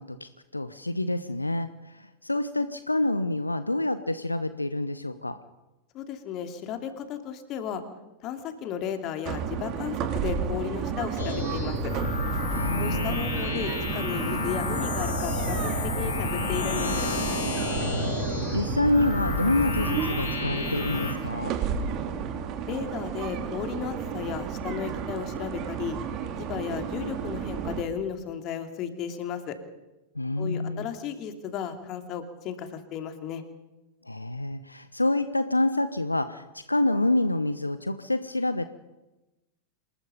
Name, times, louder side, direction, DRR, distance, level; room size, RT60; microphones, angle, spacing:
voice 1, 0.0-5.4 12.5-13.3 17.7-21.6 30.1-30.9 34.0-38.7, left 2 dB, 85° left, 12 dB, 0.8 m, -27 dB
voice 2, 5.9-7.8 8.2-11.9 12.8-17.1 22.7-26.0 26.4-29.6 30.4-33.4, left 8 dB, 35° left, 6 dB, 2.9 m, -34 dB
sound 1, 9.3-27.8, right 8 dB, 35° right, 2.7 m, -33 dB
sound 2, 11.2-21.1, left 3 dB, 65° left, 5.6 m, -30 dB
27.0 x 20.0 x 5.4 m, 1.0 s
figure-of-eight pair, 90°, 0 cm